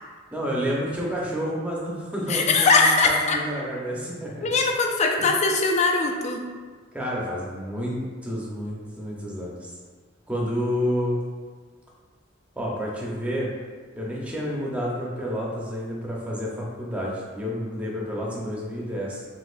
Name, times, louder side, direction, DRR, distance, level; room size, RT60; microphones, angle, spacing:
voice 1, 0.3-4.6 6.9-9.7 10.3-11.2 12.6-13.5 14.0-19.3, equal, 5° right, -5 dB, 0.8 m, -29 dB
voice 2, 2.3-3.4 4.4-6.4, left 3 dB, 35° left, 3 dB, 0.4 m, -21 dB
5.2 x 3.5 x 2.5 m, 1.5 s
head